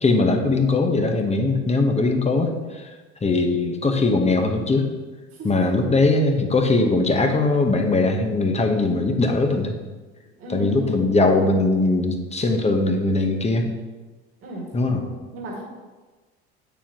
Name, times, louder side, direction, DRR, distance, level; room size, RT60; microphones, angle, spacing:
voice 1, 0.0-2.9 3.2-4.9 5.4-9.7 10.5-13.6 14.7-15.0, left 3 dB, 20° left, 4 dB, 1.2 m, -20 dB
voice 2, 5.3-5.6 10.4-11.1 14.4-14.6 15.0-15.6, right 1 dB, 45° right, -3 dB, 2.2 m, -34 dB
8.6 x 7.1 x 3.1 m, 1.3 s
hypercardioid pair, 70°, 31 cm